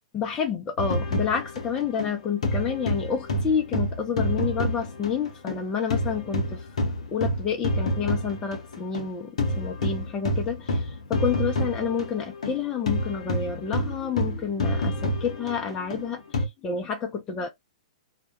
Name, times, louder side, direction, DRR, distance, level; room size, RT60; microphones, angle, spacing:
voice 1, 0.1-6.7 7.1-17.5, left 6 dB, 20° left, 0.5 m, -29 dB
sound 1, 0.8-5.6 5.9-16.5, left 1 dB, 65° left, 0.7 m, -28 dB
2.2 x 2.0 x 2.9 m
figure-of-eight pair, 110°, 4 cm